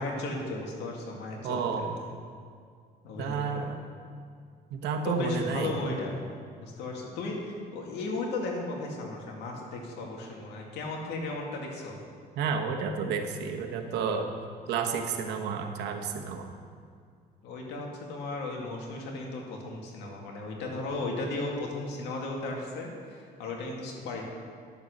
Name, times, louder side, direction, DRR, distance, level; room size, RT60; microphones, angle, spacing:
voice 1, 0.0-2.1 3.0-3.7 5.0-6.1 6.6-12.0 17.4-24.2, left 2 dB, 85° left, 0 dB, 2.1 m, -35 dB
voice 2, 1.4-1.9 3.2-3.8 4.7-5.7 12.4-14.3 14.7-16.5, right 5 dB, 80° right, 4 dB, 1.2 m, -31 dB
11.0 x 6.9 x 6.7 m, 2.2 s
cardioid pair, 110°, 17 cm